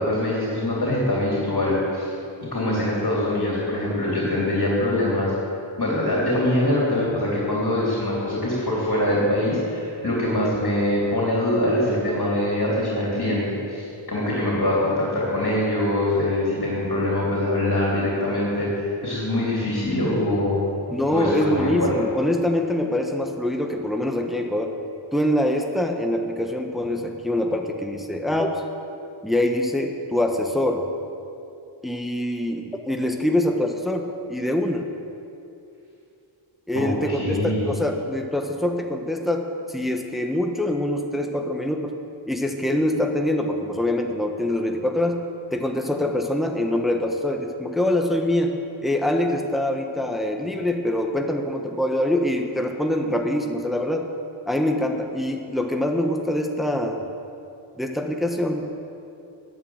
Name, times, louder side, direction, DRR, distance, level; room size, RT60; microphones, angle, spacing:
voice 1, 0.0-2.1 2.4-5.3 5.8-18.7 19.0-20.6 21.1-21.9 36.7-37.7, left 1 dB, 40° left, -6 dB, 3.4 m, -23 dB
voice 2, 20.9-24.8 25.1-28.6 29.2-30.9 31.8-34.9 36.7-41.9 42.3-48.6 48.8-54.1 54.5-57.0 57.8-58.8, left 1 dB, ahead, 3 dB, 1.0 m, -24 dB
11.0 x 8.9 x 7.9 m, 2.6 s
wide cardioid pair, 85°, 49 cm